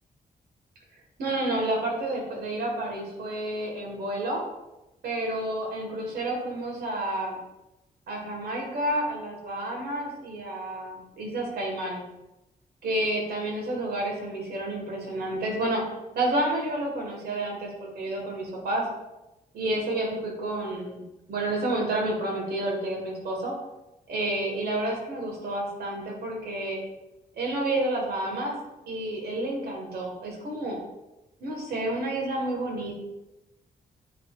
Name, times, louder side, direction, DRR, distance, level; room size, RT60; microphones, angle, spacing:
voice 1, 1.2-4.4 5.0-7.4 8.1-12.0 12.8-18.9 19.5-23.5 24.1-26.8 27.4-28.5 28.9-30.8 31.4-33.0, right 1 dB, 85° right, -1 dB, 1.6 m, -30 dB
9.4 x 4.2 x 2.4 m, 0.97 s
wide cardioid pair, 180°, 16 cm